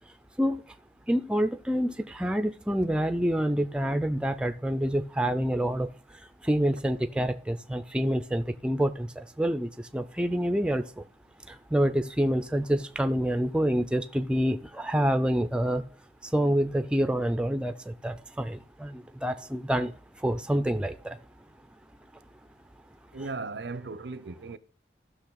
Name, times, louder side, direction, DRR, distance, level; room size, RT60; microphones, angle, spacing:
voice 1, 1.1-5.9 6.4-11.0 11.5-15.8 16.2-19.9 20.2-21.2, equal, 5° right, 0.4 m, -27 dB
voice 2, 23.1-24.6, right 3 dB, 75° right, 0.6 m, -37 dB
14.5 x 6.2 x 3.9 m
head